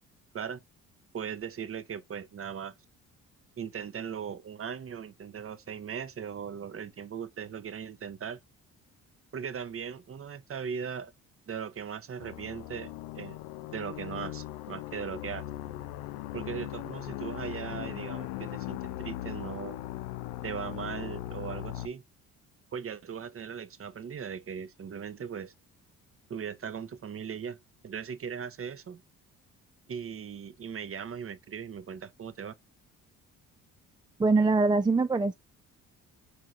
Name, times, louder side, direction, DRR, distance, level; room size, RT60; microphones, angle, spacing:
voice 1, 1.1-2.8 3.6-8.4 9.3-11.1 11.5-13.4 13.7-15.5 16.3-19.8 20.4-22.0 22.7-25.5 26.3-29.0 29.9-32.5, right 7 dB, 40° right, 0.9 m, -38 dB
sound 1, 12.2-21.9, left 14 dB, 85° left, 0.5 m, -39 dB
voice 2, 34.2-35.3, right 3 dB, 15° right, 0.4 m, -23 dB
4.7 x 4.5 x 2.4 m
supercardioid pair, 65°, 34 cm